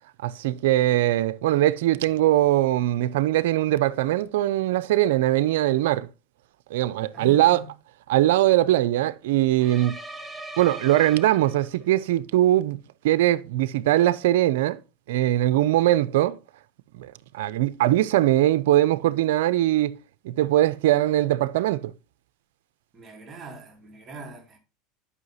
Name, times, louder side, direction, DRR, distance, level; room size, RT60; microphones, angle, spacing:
voice 1, 0.2-6.1 6.7-7.6 8.1-10.0 10.6-14.8 15.1-16.4 17.0-20.0 20.2-21.9, right 14 dB, 80° right, 0.5 m, -21 dB
voice 2, 7.1-7.7 22.9-24.6, right 3 dB, 30° right, 2.4 m, -42 dB
sound 1, 9.6-12.0, right 1 dB, 5° right, 1.3 m, -40 dB
11.0 x 5.6 x 2.7 m
supercardioid pair, 115°, 0 cm